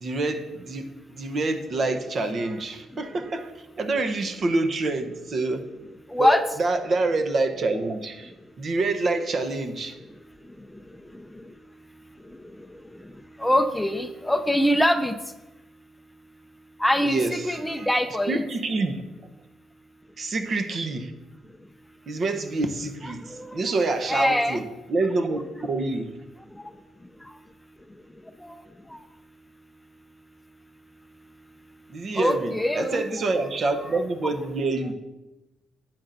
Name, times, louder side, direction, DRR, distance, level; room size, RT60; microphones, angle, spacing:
voice 1, 0.0-3.5 3.8-5.7 6.2-8.3 8.6-10.0 17.0-17.9 18.3-19.0 20.2-21.1 22.1-23.2 23.5-26.1 31.9-34.9, right 3 dB, 50° right, 6 dB, 0.9 m, -27 dB
voice 2, 6.1-6.4 13.4-15.1 16.8-18.4 23.3-23.6 24.1-24.6 28.4-28.6 28.9-29.0 32.1-33.0, left 1 dB, 5° left, 8 dB, 0.5 m, -23 dB
11.0 x 7.7 x 2.6 m, 1.0 s
cardioid pair, 90°, 0 cm